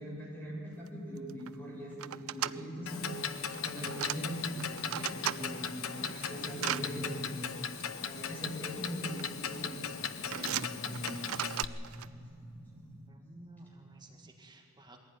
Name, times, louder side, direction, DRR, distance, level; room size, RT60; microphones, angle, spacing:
voice 1, 0.0-7.5 8.0-11.3 11.9-13.0, equal, 10° left, -4 dB, 7.6 m, -41 dB
sound 1, 0.9-1.0 1.2-1.5 2.0-2.6 3.5-4.2 4.6-5.4 5.9-6.8 7.8-7.9 8.9-9.2 9.5-9.9 10.3-12.1, right 11 dB, 80° right, 0.4 m, -37 dB
Clock, 2.9-11.6, left 7 dB, 85° left, 1.0 m, -38 dB
voice 2, 13.1-15.0, right 2 dB, 20° right, 2 dB, 2.0 m, -54 dB
21.5 x 16.0 x 9.6 m, 2.5 s
head